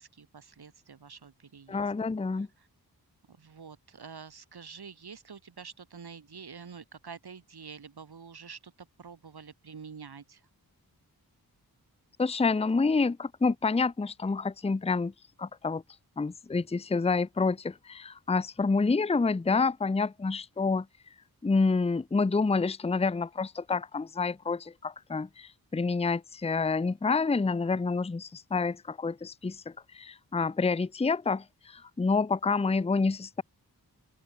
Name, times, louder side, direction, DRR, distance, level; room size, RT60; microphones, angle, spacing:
voice 1, 0.0-2.7 3.3-10.5, right 6 dB, 85° right, 5.7 m, -47 dB
voice 2, 1.7-2.5 12.2-15.1 15.4-15.8 16.2-20.9 21.4-33.4, left 4 dB, 15° left, 0.6 m, -28 dB
open air
wide cardioid pair, 105°, 37 cm